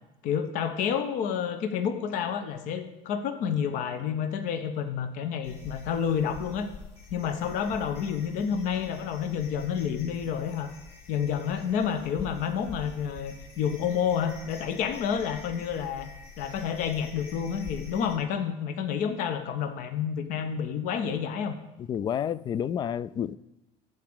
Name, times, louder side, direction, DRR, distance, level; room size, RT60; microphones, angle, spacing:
voice 1, 0.2-6.7 7.1-10.7 11.1-16.1 16.4-21.6, left 7 dB, 65° left, 9 dB, 1.3 m, -29 dB
sound 1, 5.4-18.2, left 3 dB, 50° left, 4.3 m, -46 dB
voice 2, 21.9-23.4, left 9 dB, 30° left, 20 dB, 0.4 m, -29 dB
15.0 x 5.0 x 8.8 m, 0.97 s
cardioid pair, 145°, 14 cm